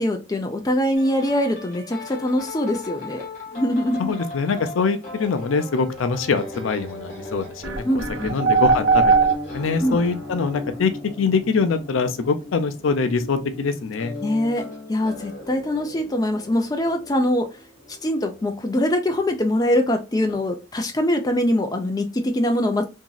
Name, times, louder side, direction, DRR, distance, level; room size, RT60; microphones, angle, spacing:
voice 1, 0.0-3.3 3.5-4.1 7.8-8.4 9.8-10.0 14.2-17.5 18.0-22.8, left 1 dB, 20° left, 0.4 m, -23 dB
sound 1, 0.9-19.4 20.2-20.5, left 2 dB, 40° left, 1.3 m, -38 dB
voice 2, 4.0-7.5 7.9-10.9 11.2-14.1, left 4 dB, 80° left, 0.5 m, -24 dB
sound 2, 7.1-7.2 7.6-9.9, right 5 dB, 60° right, 0.5 m, -19 dB
2.9 x 2.6 x 2.3 m
head